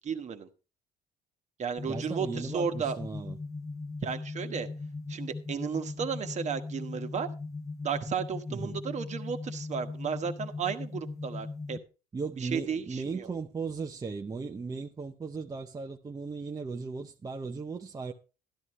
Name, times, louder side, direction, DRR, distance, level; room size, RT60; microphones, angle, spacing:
voice 1, 0.0-0.5 1.6-3.0 4.0-4.7 5.1-7.3 7.8-11.8 12.4-13.3, right 6 dB, 45° right, 1.2 m, -33 dB
sound 1, 1.8-11.8, left 3 dB, 15° left, 0.9 m, -39 dB
voice 2, 1.8-3.4 8.5-8.8 12.1-18.1, right 4 dB, 20° right, 0.6 m, -37 dB
12.5 x 11.0 x 3.1 m
cardioid pair, 110°, 17 cm